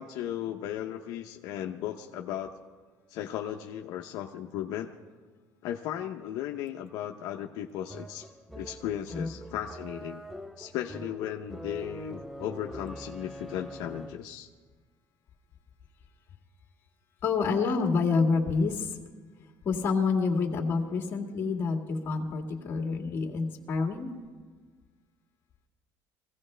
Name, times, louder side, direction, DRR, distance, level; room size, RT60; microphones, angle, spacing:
voice 1, 0.0-2.6 3.1-4.9 5.6-8.3 8.5-10.2 10.6-14.5, left 11 dB, 70° left, 3 dB, 0.7 m, -36 dB
sound 1, 7.9-14.4, equal, ahead, 0.4 m, -43 dB
voice 2, 17.2-19.0 19.6-24.1, left 4 dB, 35° left, 1 dB, 2.0 m, -28 dB
22.5 x 16.0 x 3.3 m, 1.5 s
cardioid pair, 160°, 7 cm